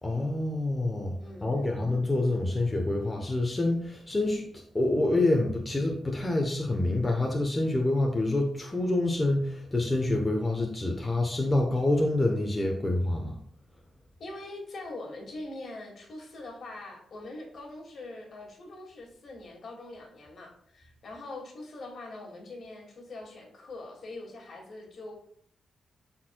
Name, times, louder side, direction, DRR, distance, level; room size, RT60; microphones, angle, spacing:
voice 1, 0.0-1.1 1.4-4.4 4.7-13.4, left 2 dB, 15° left, 1 dB, 0.8 m, -27 dB
voice 2, 1.2-1.8 14.2-25.1, left 2 dB, 60° left, 0 dB, 2.0 m, -43 dB
12.0 x 4.4 x 2.2 m, 0.65 s
wide cardioid pair, 125°, 0 cm